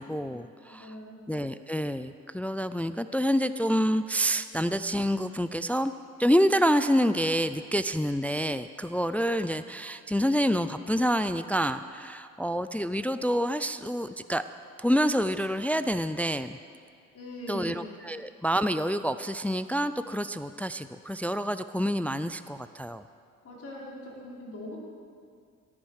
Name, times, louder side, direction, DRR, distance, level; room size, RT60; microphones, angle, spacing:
voice 1, 0.0-0.9 1.3-5.9 6.2-14.4 14.8-16.6 17.5-23.0, equal, 5° left, 11 dB, 0.4 m, -27 dB
voice 2, 0.6-1.3 17.1-17.8 18.1-18.2 23.4-24.8, left 1 dB, 50° left, -4 dB, 4.8 m, -41 dB
17.5 x 9.6 x 6.5 m, 2.2 s
cardioid pair, 90°, 30 cm